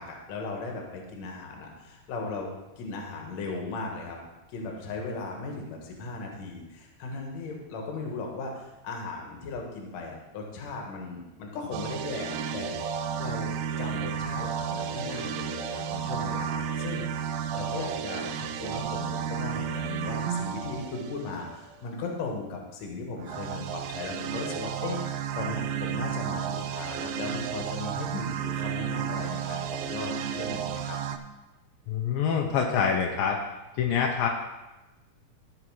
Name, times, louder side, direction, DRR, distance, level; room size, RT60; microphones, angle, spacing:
voice 1, 0.0-2.5 2.8-4.2 4.5-31.0, left 3 dB, 55° left, 1 dB, 2.4 m, -37 dB
sound 1, 11.7-21.8 23.2-31.2, right 8 dB, 85° right, 2.4 m, -32 dB
voice 2, 31.9-33.4 33.8-34.3, left 7 dB, 80° left, 1 dB, 2.5 m, -25 dB
14.5 x 4.9 x 4.7 m, 1.0 s
omnidirectional pair, 4.1 m